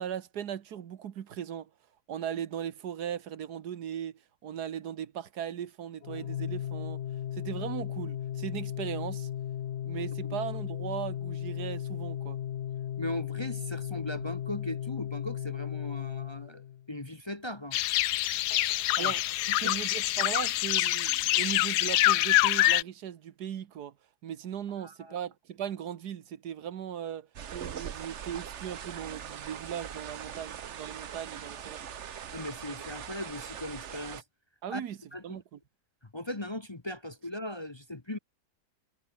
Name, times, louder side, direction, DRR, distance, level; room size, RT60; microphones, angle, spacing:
voice 1, 0.0-1.7 2.1-7.0 7.3-9.3 9.8-12.4 19.0-19.2 19.6-23.9 24.2-31.8 34.6-35.0 35.2-35.6, right 9 dB, 80° right, 1.6 m, -38 dB
Organ, 6.0-16.9, left 10 dB, 55° left, 0.8 m, -36 dB
voice 2, 10.0-10.4 13.0-17.8 19.0-19.1 19.5-19.8 24.8-25.2 32.3-34.2 34.7-34.8 35.1-35.4 36.1-38.2, left 1 dB, 20° left, 1.0 m, -38 dB
sound 1, 17.7-22.8, left 15 dB, 90° left, 1.2 m, -26 dB
sound 2, 27.4-34.2, right 8 dB, 50° right, 1.2 m, -41 dB
omnidirectional pair, 1.7 m